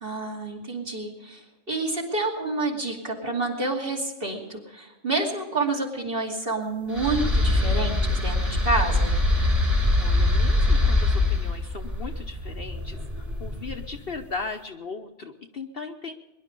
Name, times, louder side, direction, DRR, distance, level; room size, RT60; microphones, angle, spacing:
voice 1, 0.0-9.1, right 2 dB, 40° right, -1 dB, 2.8 m, -29 dB
sound 1, 6.9-14.1, left 2 dB, 25° right, 2.9 m, -23 dB
voice 2, 10.0-16.1, left 4 dB, 50° left, 5 dB, 1.0 m, -37 dB
22.0 x 11.5 x 5.3 m, 1.0 s
omnidirectional pair, 1.4 m